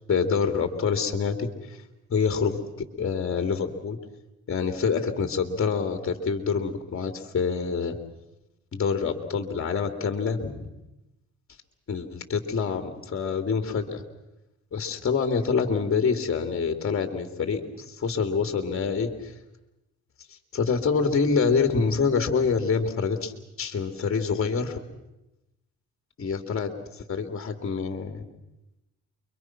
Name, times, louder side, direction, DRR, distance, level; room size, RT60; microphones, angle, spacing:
voice 1, 0.1-1.8 2.1-2.6 3.0-4.0 4.5-8.0 8.7-10.7 11.9-14.0 14.7-19.3 20.5-23.3 23.6-24.8 26.2-28.2, left 5 dB, 45° left, 8 dB, 3.0 m, -26 dB
29.5 x 24.0 x 6.1 m, 0.95 s
cardioid pair, 90°, 30 cm